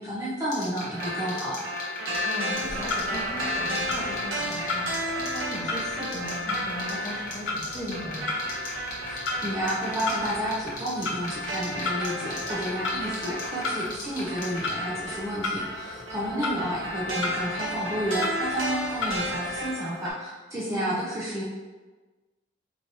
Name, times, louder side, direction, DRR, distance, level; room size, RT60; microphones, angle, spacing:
voice 1, 0.0-1.6 9.0-21.4, equal, 15° right, -7 dB, 0.4 m, -31 dB
sound 1, 0.5-14.7, left 5 dB, 45° left, 1.0 m, -37 dB
sound 2, 0.9-20.1, equal, 80° right, 0.7 m, -33 dB
voice 2, 2.2-8.3 16.3-16.6 20.7-21.0, left 1 dB, 20° left, -6 dB, 0.8 m, -37 dB
Clock, 2.5-19.7, left 2 dB, 70° left, 0.5 m, -36 dB
4.6 x 2.7 x 2.6 m, 1.3 s
head